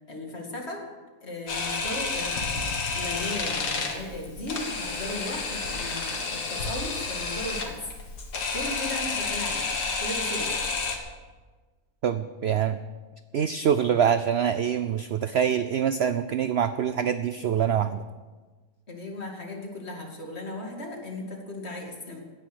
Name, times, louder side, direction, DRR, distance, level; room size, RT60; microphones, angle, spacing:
voice 1, 0.1-0.9 1.2-2.6 2.9-7.8 8.5-9.6 10.0-10.5 18.9-22.2, left 1 dB, 40° left, 1 dB, 2.7 m, -36 dB
Camera, 1.5-11.0, left 4 dB, 85° left, 2.2 m, -30 dB
voice 2, 12.0-12.8 13.3-18.0, right 8 dB, 70° right, 12 dB, 0.6 m, -25 dB
17.0 x 10.0 x 6.4 m, 1.3 s
omnidirectional pair, 1.7 m